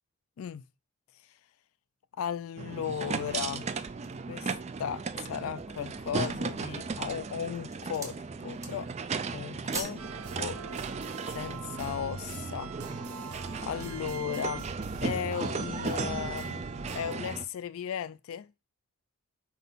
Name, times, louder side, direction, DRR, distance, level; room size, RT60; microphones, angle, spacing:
voice 1, 2.2-3.7 4.3-4.5 4.8-8.2 8.4-8.9 9.3-10.0 10.4-10.6 11.3-12.7 13.6-14.7 15.0-16.6 16.9-18.5, left 8 dB, 70° left, 0.3 m, -35 dB
sound 1, 2.6-17.4, right 4 dB, 30° right, 0.3 m, -36 dB
sound 2, 3.3-4.3 4.9-5.0 5.5-6.1 6.8-7.1 7.5-8.2 8.5-9.0 9.3-10.1 10.4-10.5, right 2 dB, 15° right, 0.8 m, -43 dB
sound 3, 10.0-17.1, right 4 dB, 80° right, 0.7 m, -43 dB
4.6 x 3.9 x 5.5 m
head